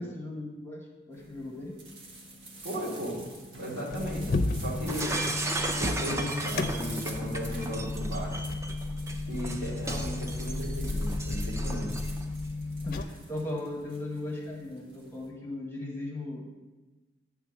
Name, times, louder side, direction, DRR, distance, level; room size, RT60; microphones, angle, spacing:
voice 1, 0.0-1.8 12.8-16.4, left 2 dB, 10° left, -2 dB, 0.9 m, -37 dB
sound 1, 1.1-15.3, right 2 dB, 85° right, 1.5 m, -48 dB
voice 2, 2.6-5.2 5.8-8.3 9.3-11.9, equal, 60° right, -5 dB, 2.3 m, -36 dB
sound 2, 3.9-13.0, left 2 dB, 50° left, 0.5 m, -33 dB
Shatter, 4.9-12.2, right 2 dB, 15° right, 0.4 m, -35 dB
8.9 x 3.7 x 6.1 m, 1.2 s
head